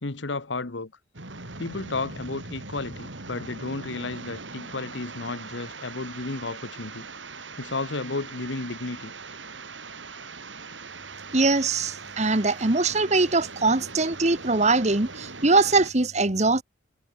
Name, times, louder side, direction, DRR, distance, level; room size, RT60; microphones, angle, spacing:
voice 1, 0.0-0.9 1.6-7.1 7.6-9.1, left 3 dB, 75° left, 1.3 m, -33 dB
sound 1, 1.1-15.9, right 4 dB, 80° right, 6.3 m, -41 dB
voice 2, 11.3-16.6, right 3 dB, 35° right, 1.6 m, -22 dB
head